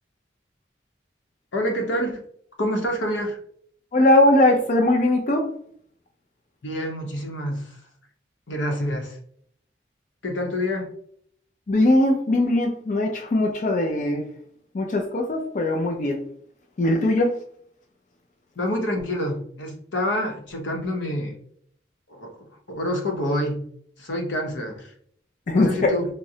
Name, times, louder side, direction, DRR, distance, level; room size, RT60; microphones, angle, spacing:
voice 1, 1.5-2.2 2.6-3.4 6.6-7.8 8.5-9.2 10.2-10.9 18.6-21.4 22.1-23.6 24.0-24.9 25.5-26.1, equal, 90° left, 2 dB, 0.8 m, -27 dB
voice 2, 3.9-5.5 11.7-14.3 14.7-16.2 16.8-17.4 25.5-26.0, left 1 dB, 45° left, 1 dB, 0.4 m, -20 dB
3.7 x 2.0 x 2.7 m, 0.62 s
head